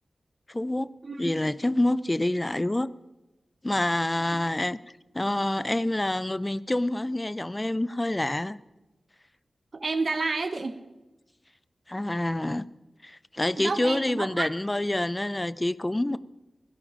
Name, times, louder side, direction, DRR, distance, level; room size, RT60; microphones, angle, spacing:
voice 1, 0.5-0.9 1.2-2.9 3.6-4.8 5.1-8.6 11.9-12.7 13.0-16.2, left 1 dB, 20° left, 0.6 m, -27 dB
voice 2, 9.7-10.8 13.6-14.5, right 3 dB, 55° right, 1.2 m, -29 dB
17.0 x 16.5 x 5.0 m
wide cardioid pair, 80°, 0 cm